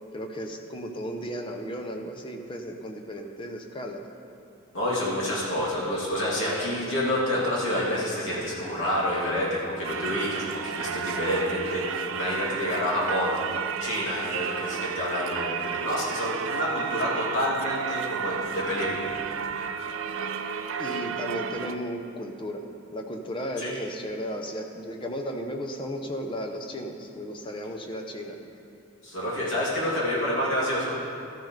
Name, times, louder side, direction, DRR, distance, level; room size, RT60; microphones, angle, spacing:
voice 1, 0.1-4.0 20.8-22.6 22.9-28.4, equal, 25° left, 4 dB, 0.7 m, -35 dB
voice 2, 4.7-13.4 13.8-19.1 23.6-23.7 29.0-31.0, left 1 dB, 70° left, -7 dB, 2.8 m, -28 dB
Singing / Church bell, 9.8-21.8, right 6 dB, 70° right, 0.4 m, -32 dB
13.5 x 10.5 x 3.3 m, 2.6 s
head